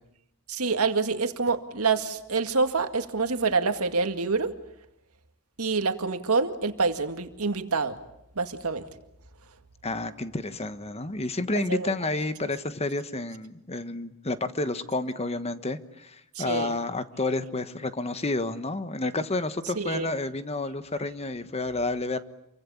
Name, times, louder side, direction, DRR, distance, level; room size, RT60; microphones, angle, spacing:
voice 1, 0.5-4.5 5.6-8.0 8.4-8.9 11.5-11.9 16.4-16.8 19.8-20.1, right 4 dB, 80° right, 8 dB, 2.1 m, -26 dB
voice 2, 9.8-22.2, left 2 dB, 30° left, 11 dB, 1.3 m, -30 dB
28.0 x 24.0 x 8.6 m, 0.81 s
head